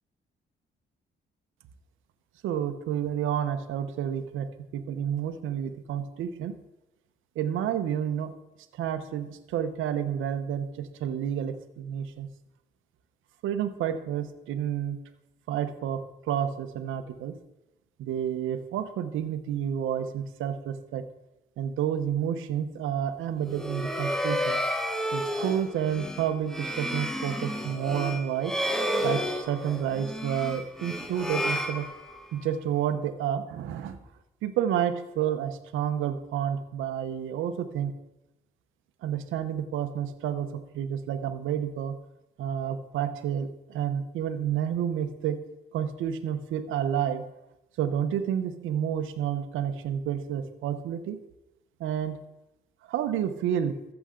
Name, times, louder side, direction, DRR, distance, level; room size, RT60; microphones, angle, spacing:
voice 1, 2.4-6.6 7.4-8.3 8.7-12.3 13.4-15.0 15.5-17.4 18.0-21.0 21.6-24.6 25.1-28.5 29.0-31.9 32.3-34.0 34.4-37.9 39.0-42.0 42.4-45.4 45.7-47.2 47.8-51.2 51.8-52.2 52.9-53.8, right 9 dB, 85° right, 10 dB, 0.8 m, -30 dB
sound 1, 23.4-32.5, equal, ahead, 0.9 m, -31 dB
14.0 x 7.0 x 3.8 m, 0.95 s
cardioid pair, 90°, 20 cm